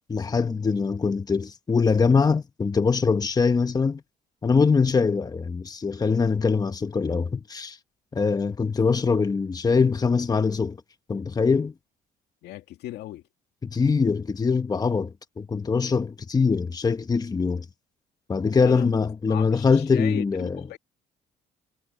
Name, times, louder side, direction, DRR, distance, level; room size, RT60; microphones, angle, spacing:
voice 1, 0.1-4.0 4.4-7.8 8.1-10.8 11.1-11.7 13.6-17.6 18.3-20.6, left 5 dB, 25° left, 1.2 m, -23 dB
voice 2, 12.4-13.2 18.6-19.0 19.3-20.8, left 14 dB, 80° left, 2.3 m, -37 dB
cardioid pair, 110°, 17 cm